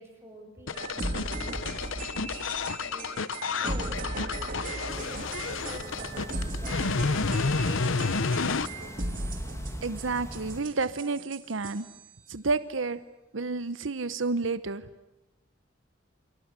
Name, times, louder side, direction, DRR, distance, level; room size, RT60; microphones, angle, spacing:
voice 1, 0.0-2.3 2.6-3.1 3.5-4.0 4.7-8.0, equal, 15° right, 1 dB, 7.5 m, -48 dB
sound 1, 0.7-8.7, left 4 dB, 80° left, 1.0 m, -30 dB
sound 2, 0.7-12.1, right 1 dB, 45° right, 3.6 m, -37 dB
sound 3, 4.9-10.6, equal, 15° left, 2.2 m, -42 dB
voice 2, 9.8-11.9 12.3-13.0 13.3-14.8, right 3 dB, 75° right, 13 dB, 0.9 m, -30 dB
29.5 x 24.5 x 8.3 m, 0.94 s
head